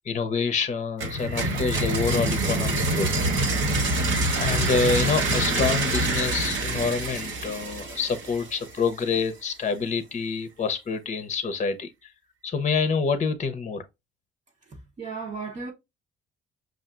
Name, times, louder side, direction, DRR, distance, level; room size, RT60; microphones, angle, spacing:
voice 1, 0.1-3.1 4.4-11.9 12.4-13.8, left 5 dB, 35° left, 0.8 m, -27 dB
sound 1, 1.0-8.8, right 2 dB, 70° right, 1.4 m, -26 dB
voice 2, 14.7-15.7, right 4 dB, 35° right, 1.0 m, -35 dB
5.6 x 2.5 x 2.5 m
cardioid pair, 90°, 20 cm